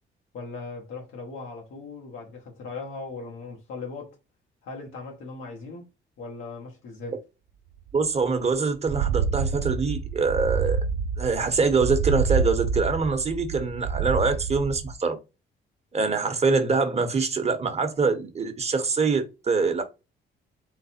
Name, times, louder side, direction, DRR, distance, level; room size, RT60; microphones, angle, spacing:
voice 1, 0.3-4.2 4.6-5.9 6.2-7.1, left 3 dB, 85° left, 1.3 m, -38 dB
voice 2, 7.9-10.8 11.2-15.2 15.9-19.8, right 4 dB, 30° right, 1.0 m, -24 dB
sound 1, 7.9-8.0 8.2-8.3 8.7-14.9, right 6 dB, 75° right, 0.4 m, -28 dB
4.0 x 2.1 x 4.2 m
cardioid pair, 90°, 20 cm